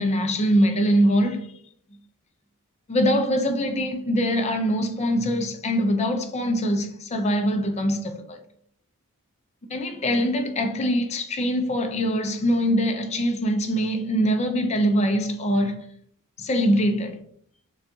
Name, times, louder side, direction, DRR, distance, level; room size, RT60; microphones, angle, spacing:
voice 1, 0.0-1.6 2.9-8.4 9.7-15.8 16.4-17.2, equal, 30° left, 0.5 m, -23 dB
6.3 x 2.3 x 2.7 m
head